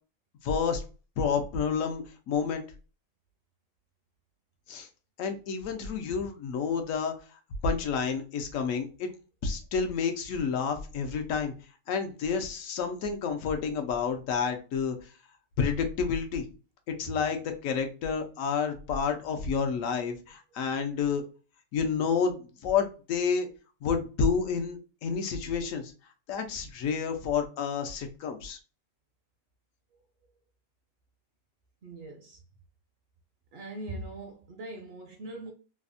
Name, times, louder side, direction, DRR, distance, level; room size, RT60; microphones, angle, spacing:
voice 1, 0.4-0.8 1.2-2.6 4.7-4.9 5.2-7.1 7.6-9.1 9.4-11.5 11.9-15.0 15.6-16.5 16.9-21.2 21.7-23.5 23.8-25.9 26.3-28.6, left 6 dB, 75° left, 1.0 m, -29 dB
voice 2, 31.8-32.4 33.5-35.5, right 2 dB, 60° right, 0.7 m, -41 dB
3.2 x 2.0 x 2.4 m
omnidirectional pair, 1.4 m